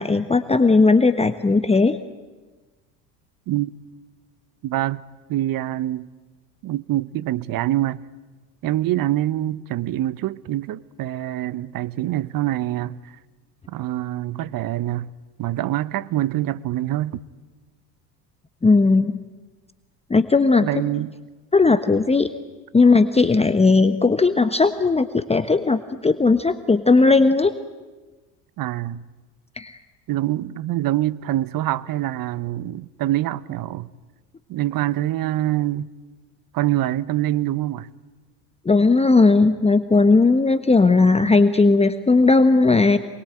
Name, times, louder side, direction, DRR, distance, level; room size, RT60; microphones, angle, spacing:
voice 1, 0.0-2.0 18.6-19.2 20.1-20.7 21.5-22.3 22.7-27.5 29.6-29.8 38.6-43.0, left 3 dB, 15° left, 1.1 m, -17 dB
voice 2, 4.6-5.0 5.3-6.1 6.6-8.0 8.6-13.0 13.7-15.1 15.4-17.2 20.6-21.1 28.6-29.0 30.1-33.9 34.5-35.9 36.5-37.9, right 14 dB, 45° right, 1.0 m, -25 dB
27.0 x 22.0 x 9.0 m
hypercardioid pair, 70°, 46 cm